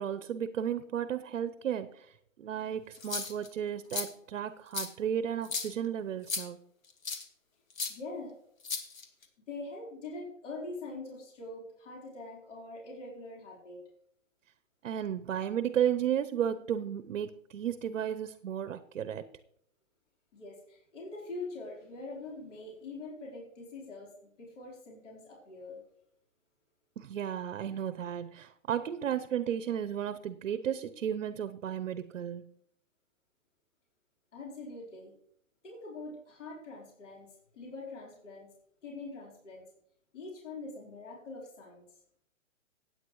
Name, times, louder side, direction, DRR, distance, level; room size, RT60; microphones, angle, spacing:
voice 1, 0.0-6.6 14.8-19.3 27.0-32.5, right 9 dB, 70° right, 12 dB, 0.8 m, -34 dB
sound 1, 2.9-3.5 3.9-4.1 4.7-4.9 5.4-5.7 6.3-6.4 7.0-7.2 7.8-7.9 8.6-9.2, left 5 dB, 85° left, 2.2 m, -35 dB
voice 2, 7.9-8.3 9.5-13.8 20.3-25.8 34.3-35.1 35.6-37.3 37.5-38.5 38.8-39.6 40.1-41.9, left 3 dB, 60° left, -3 dB, 4.2 m, -43 dB
16.5 x 9.3 x 3.1 m, 0.72 s
hypercardioid pair, 160°, 40 cm